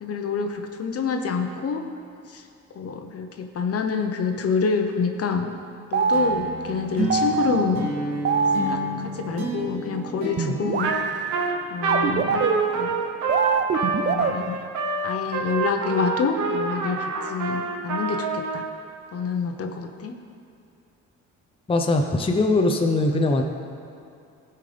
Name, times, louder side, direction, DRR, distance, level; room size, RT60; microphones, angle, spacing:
voice 1, 0.0-1.8 2.3-2.4 2.7-5.5 5.9-7.9 8.6-10.9 11.7-12.9 14.0-14.6 15.0-18.7 19.1-20.1, left 5 dB, 50° left, 5 dB, 0.9 m, -27 dB
sound 1, 5.9-9.4 10.4-14.3, right 5 dB, 35° right, 0.5 m, -25 dB
sound 2, 6.1-11.7, right 2 dB, 90° right, 2.1 m, -32 dB
Trumpet, 10.8-11.0 11.3-18.7, right 3 dB, 75° right, 1.0 m, -27 dB
voice 2, 21.7-23.4, left 2 dB, 20° left, 3 dB, 0.7 m, -21 dB
15.0 x 5.7 x 3.4 m, 2.5 s
cardioid pair, 90°, 30 cm